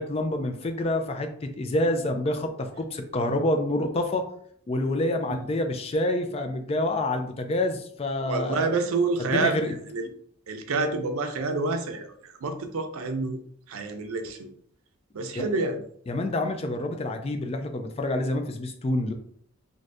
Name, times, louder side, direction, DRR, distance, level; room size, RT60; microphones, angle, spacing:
voice 1, 0.0-4.3 4.7-8.7 9.3-9.7 15.4-15.5 16.1-19.1, left 1 dB, 30° left, 6 dB, 0.3 m, -27 dB
voice 2, 8.3-9.6 9.9-10.1 10.5-13.4 13.7-14.5 15.1-15.8, right 3 dB, 85° right, 6 dB, 0.5 m, -28 dB
2.6 x 2.6 x 3.3 m, 0.63 s
head